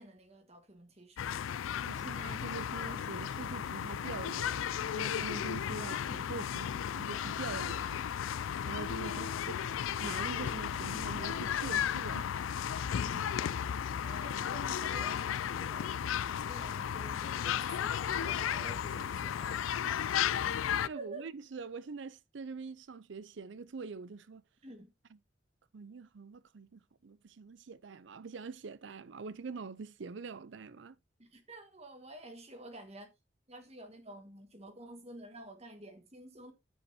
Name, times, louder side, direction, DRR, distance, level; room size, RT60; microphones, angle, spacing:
voice 1, 0.0-1.4 1.8-2.1 9.0-9.3 12.9-13.4 13.7-16.0 16.4-19.9 20.9-21.3 24.6-24.9 31.2-33.1 33.5-36.5, right 2 dB, 35° right, 1.6 m, -50 dB
sound 1, 1.2-20.9, left 9 dB, 85° left, 0.4 m, -34 dB
voice 2, 1.8-8.1 8.6-9.3 10.0-12.3 19.9-20.0 20.9-24.4 25.7-31.0, right 4 dB, 65° right, 0.5 m, -44 dB
9.8 x 8.0 x 2.7 m
head